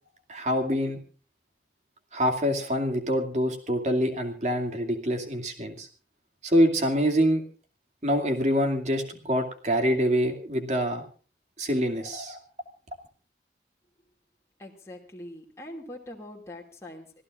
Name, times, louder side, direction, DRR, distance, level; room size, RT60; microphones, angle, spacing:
voice 1, 0.3-1.0 2.1-5.9 6.4-7.4 8.0-11.0 11.6-12.4, equal, 40° right, 4 dB, 2.5 m, -25 dB
voice 2, 14.6-17.2, left 1 dB, 15° left, -1 dB, 2.5 m, -43 dB
26.5 x 15.5 x 2.5 m, 0.37 s
head